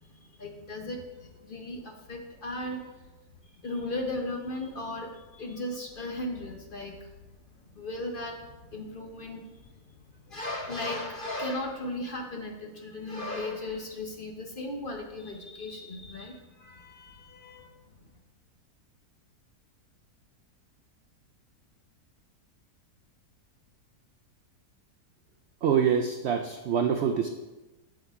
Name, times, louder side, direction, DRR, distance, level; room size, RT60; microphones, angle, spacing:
voice 1, 0.0-2.8 3.6-7.1 7.8-9.8 10.2-17.7, left 1 dB, 40° left, 2 dB, 0.8 m, -36 dB
voice 2, 25.6-27.3, right 7 dB, 75° right, 5 dB, 0.6 m, -25 dB
8.3 x 7.7 x 3.5 m, 1.1 s
omnidirectional pair, 1.7 m